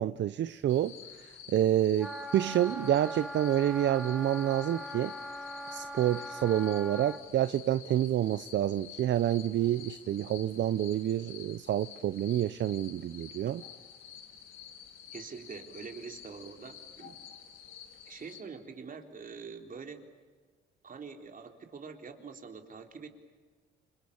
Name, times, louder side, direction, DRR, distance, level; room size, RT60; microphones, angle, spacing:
voice 1, 0.0-5.1 5.7-13.6, right 11 dB, 65° right, 14 dB, 0.8 m, -28 dB
sound 1, 0.7-18.4, left 8 dB, 85° left, 3.9 m, -50 dB
Wind instrument woodwind instrument, 2.0-7.2, left 1 dB, 5° right, 2.4 m, -41 dB
voice 2, 15.1-17.2 18.1-20.1 20.8-23.1, right 5 dB, 45° right, 5 dB, 3.9 m, -45 dB
30.0 x 26.5 x 7.2 m, 1.4 s
cardioid pair, 90°, 20 cm